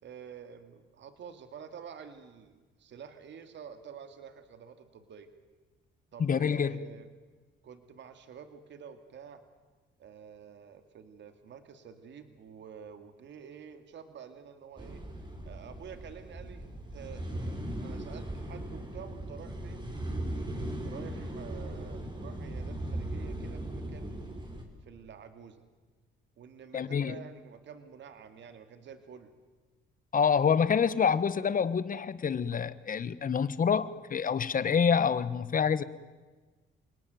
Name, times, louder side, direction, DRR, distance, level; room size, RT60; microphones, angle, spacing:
voice 1, 0.0-5.3 6.1-7.1 7.6-9.4 10.0-15.0 15.4-19.9 20.8-24.2 24.8-25.6 26.4-29.3 30.8-30.9, right 7 dB, 65° right, 2.4 m, -49 dB
voice 2, 6.2-6.8 26.7-27.1 30.1-35.8, left 6 dB, 45° left, 1.2 m, -27 dB
sound 1, 14.8-24.6, right 1 dB, 20° right, 5.1 m, -38 dB
28.0 x 19.0 x 9.3 m
cardioid pair, 90°, 20 cm